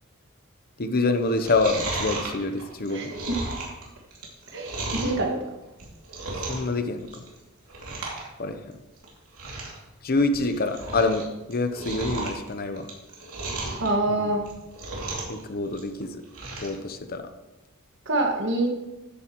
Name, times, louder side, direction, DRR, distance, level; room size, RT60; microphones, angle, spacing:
voice 1, 0.8-3.1 6.5-7.2 8.4-8.6 10.0-12.9 14.2-14.3 15.3-16.2 16.6-17.3, left 3 dB, 45° left, 8 dB, 0.8 m, -26 dB
Chewing mastication, 1.2-5.2 5.7-6.7 7.0-7.4 7.7-8.2 8.5-8.6 9.0-9.1 9.3-9.8 10.2-11.2 11.5-13.9 14.3-15.4 15.7-16.7 17.1-17.2, right 2 dB, 85° right, 2.8 m, -34 dB
voice 2, 4.5-5.4 13.8-14.4 18.0-18.7, right 2 dB, 60° right, 1 dB, 1.8 m, -25 dB
13.0 x 8.3 x 3.1 m, 1.0 s
head